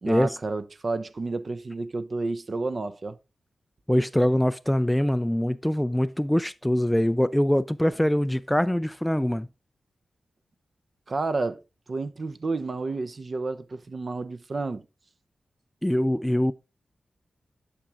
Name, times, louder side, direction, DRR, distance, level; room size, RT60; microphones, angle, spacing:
voice 1, 0.0-3.2 11.1-11.6 11.9-14.8, right 3 dB, 45° right, 0.7 m, -30 dB
voice 2, 3.9-9.5 15.8-16.5, left 1 dB, 5° left, 0.3 m, -23 dB
10.0 x 6.1 x 3.6 m
wide cardioid pair, 90°, 0 cm